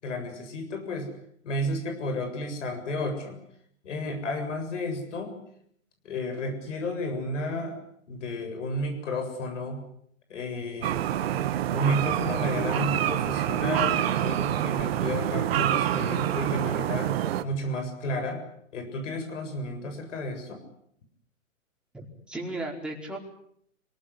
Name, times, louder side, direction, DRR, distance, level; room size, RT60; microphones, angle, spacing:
voice 1, 0.0-1.1 1.4-3.4 3.8-5.4 6.0-7.8 8.1-9.8 10.3-11.0 11.7-17.1 17.4-18.4 18.7-20.6, left 1 dB, 65° left, 5 dB, 7.5 m, -32 dB
sound 1, 10.8-17.4, right 11 dB, 50° right, 1.8 m, -27 dB
voice 2, 21.9-23.2, right 2 dB, ahead, -2 dB, 4.9 m, -35 dB
26.5 x 18.5 x 9.7 m, 0.69 s
hypercardioid pair, 140°, 40 cm